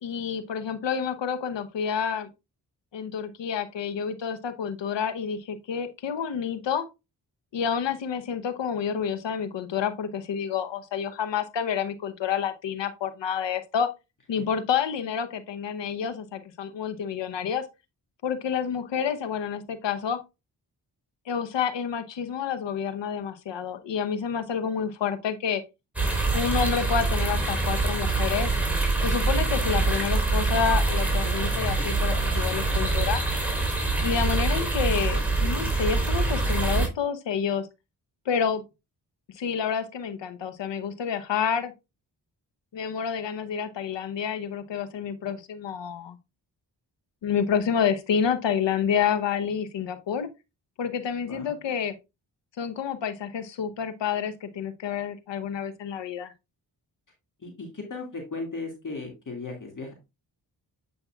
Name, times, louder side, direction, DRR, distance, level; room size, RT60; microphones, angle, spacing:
voice 1, 0.0-2.3 2.9-6.9 7.5-13.9 14.3-17.6 18.2-20.2 21.3-25.6 26.3-28.5 29.0-33.2 34.0-37.7 38.3-38.6 39.3-41.7 42.7-46.2 47.2-50.3 50.8-51.9 52.6-56.3, left 7 dB, 75° left, 1.0 m, -29 dB
sound 1, 26.0-36.9, right 3 dB, 5° right, 3.8 m, -25 dB
voice 2, 57.4-59.9, left 3 dB, 45° left, 2.1 m, -36 dB
8.3 x 5.3 x 2.3 m
supercardioid pair, 45°, 44 cm